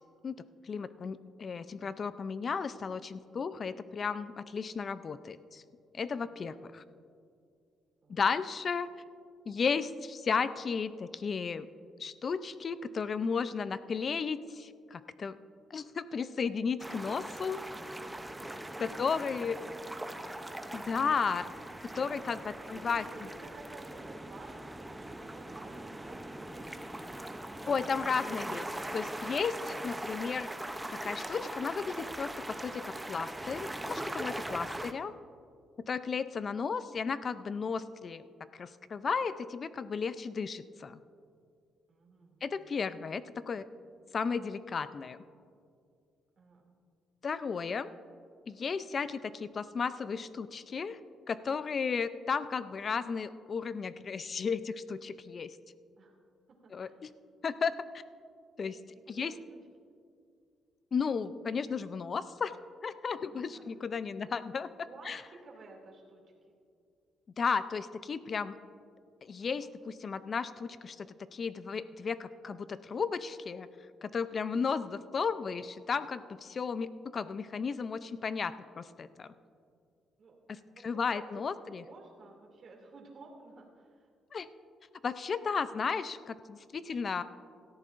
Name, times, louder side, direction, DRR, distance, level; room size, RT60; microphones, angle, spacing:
voice 1, 0.2-5.6 5.9-6.8 8.1-8.9 9.5-11.7 12.0-15.4 15.7-17.6 18.8-19.6 20.7-21.5 21.8-23.0 27.7-28.7 28.9-30.5 31.0-35.1 35.9-38.3 38.5-41.0 42.4-43.6 44.1-45.2 47.2-47.9 48.5-51.0 51.3-55.5 56.7-57.1 57.4-57.7 58.6-58.8 59.1-59.3 60.9-62.5 62.8-65.2 67.4-68.6 69.2-73.7 74.0-79.3 80.8-81.8 84.3-84.5 85.0-87.2, left 5 dB, 45° left, 14 dB, 0.5 m, -34 dB
voice 2, 6.3-6.7 8.0-8.2 18.3-19.6 19.8-19.9 22.6-27.7 41.9-43.0 44.0-44.1 46.4-46.7 56.0-56.2 56.5-57.0 58.7-58.8 59.1-59.9 63.2-63.7 64.1-64.2 64.8-66.2 80.2-80.4 80.7-84.1 86.7-87.0, right 3 dB, 55° right, -1 dB, 2.5 m, -54 dB
sound 1, 16.8-34.9, right 1 dB, 10° right, 0.6 m, -41 dB
17.5 x 13.5 x 2.6 m, 2.3 s
cardioid pair, 90°, 0 cm